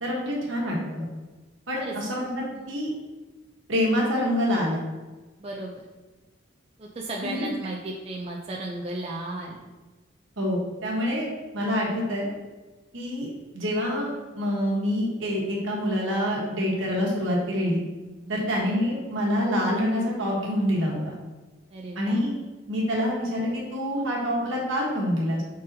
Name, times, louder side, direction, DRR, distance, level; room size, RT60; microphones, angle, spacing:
voice 1, 0.0-1.0 1.7-2.9 3.7-4.8 7.2-7.5 10.4-11.3 11.5-12.3 12.9-14.1 14.3-17.8 18.3-21.2 21.9-22.3 22.7-25.4, equal, 70° right, -3 dB, 1.2 m, -26 dB
voice 2, 5.4-5.7 6.8-9.6 18.2-18.5 21.7-22.2, right 2 dB, 30° right, -2 dB, 0.3 m, -35 dB
5.1 x 3.8 x 2.7 m, 1.2 s
head